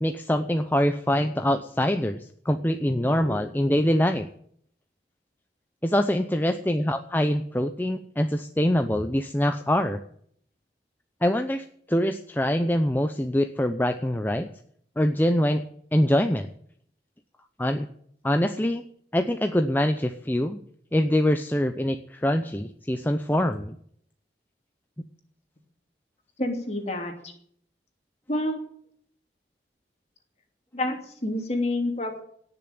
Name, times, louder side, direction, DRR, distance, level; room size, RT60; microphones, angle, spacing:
voice 1, 0.0-4.3 5.8-10.0 11.2-14.5 15.0-15.6 15.9-16.5 17.6-17.9 18.2-18.8 19.1-20.6 20.9-23.7, equal, 10° left, 7 dB, 0.7 m, -24 dB
voice 2, 26.4-27.3 28.3-28.6 30.7-32.2, left 1 dB, 35° left, 4 dB, 2.9 m, -28 dB
18.0 x 6.9 x 8.9 m, 0.64 s
head